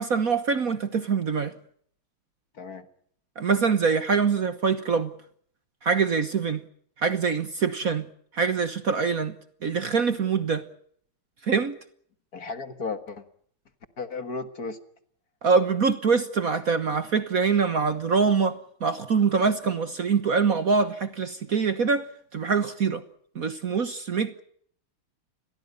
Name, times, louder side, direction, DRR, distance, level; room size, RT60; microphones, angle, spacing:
voice 1, 0.0-1.5 3.4-5.1 5.8-6.6 7.0-8.1 8.3-9.3 9.6-10.6 11.4-11.8 15.4-22.1 22.3-23.0 23.3-24.4, right 5 dB, 50° right, 1.4 m, -24 dB
voice 2, 2.5-2.9 12.3-13.2 14.0-14.8, left 4 dB, 45° left, 2.0 m, -34 dB
29.5 x 22.5 x 5.5 m
omnidirectional pair, 2.3 m